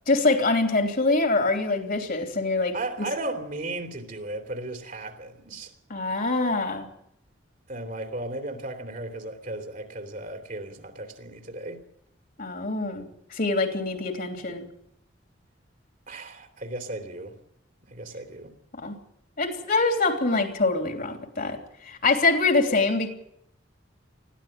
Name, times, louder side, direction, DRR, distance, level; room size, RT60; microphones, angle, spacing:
voice 1, 0.1-2.7 5.9-6.9 12.4-14.6 18.7-19.0 19.4-23.1, left 3 dB, 55° left, 3.2 m, -24 dB
voice 2, 2.7-5.7 7.7-11.8 16.1-17.4 17.9-18.5, right 2 dB, 50° right, 3.0 m, -35 dB
21.0 x 15.0 x 9.0 m
head